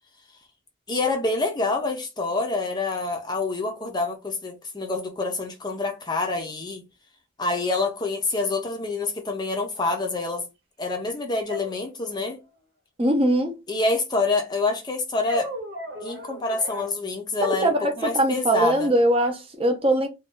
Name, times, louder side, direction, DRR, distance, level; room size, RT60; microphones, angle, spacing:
voice 1, 0.9-6.8 7.4-10.4 10.8-12.4 13.7-15.5 16.0-18.9, left 3 dB, 20° left, 0.5 m, -27 dB
sound 1, 9.7-9.8 11.5-12.4 15.2-16.9, left 1 dB, 60° right, 0.9 m, -35 dB
voice 2, 13.0-13.5 17.4-20.1, right 1 dB, 30° right, 0.6 m, -21 dB
2.6 x 2.3 x 3.7 m
head